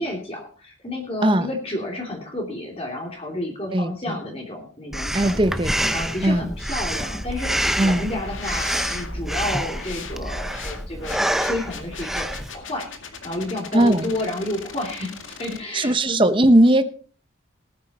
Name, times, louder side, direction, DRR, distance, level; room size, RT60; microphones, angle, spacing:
voice 1, 0.0-5.4 5.9-12.3 12.5-12.9 13.2-16.2, left 1 dB, 30° left, 0 dB, 3.0 m, -31 dB
voice 2, 3.7-4.2 5.1-6.4 7.8-8.1 13.7-14.1 15.7-16.8, right 1 dB, 25° right, 11 dB, 0.9 m, -19 dB
Breathing, 4.9-12.5, equal, ahead, 0.6 m, -27 dB
sound 1, 8.1-15.6, left 5 dB, 80° left, 2.1 m, -40 dB
18.5 x 9.5 x 4.3 m, 0.41 s
head